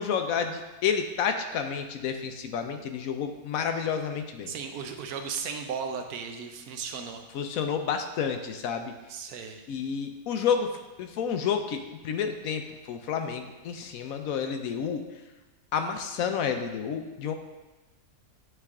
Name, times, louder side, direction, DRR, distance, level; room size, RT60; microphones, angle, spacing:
voice 1, 0.0-4.5 7.3-8.9 9.7-10.7 11.0-12.6 12.9-15.0 15.7-17.3, left 7 dB, 75° left, 6 dB, 1.0 m, -30 dB
voice 2, 4.5-7.2 9.1-9.6, right 6 dB, 90° right, 5 dB, 1.2 m, -36 dB
9.2 x 3.3 x 3.6 m, 1.1 s
omnidirectional pair, 1.5 m